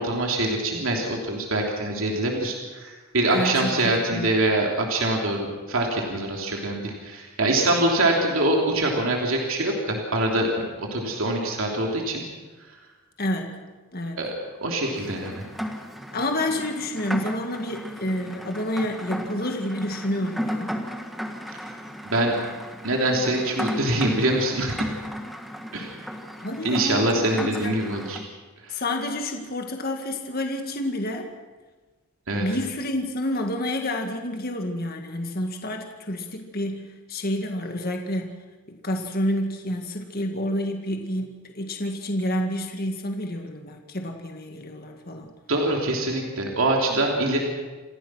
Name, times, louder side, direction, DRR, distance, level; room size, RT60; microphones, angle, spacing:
voice 1, 0.0-10.5 10.8-12.2 14.2-14.3 14.6-15.4 22.1-22.3 22.8-24.8 25.7-25.9 26.6-28.2 32.3-32.4 45.5-47.4, right 1 dB, 65° right, 0 dB, 3.1 m, -24 dB
voice 2, 3.3-4.3 13.2-14.2 16.1-20.7 26.4-27.7 28.7-31.3 32.4-38.4 38.7-45.3, left 1 dB, 45° left, 3 dB, 1.9 m, -29 dB
Rain, 14.9-28.3, equal, ahead, 1.6 m, -35 dB
28.0 x 16.0 x 6.2 m, 1.3 s
head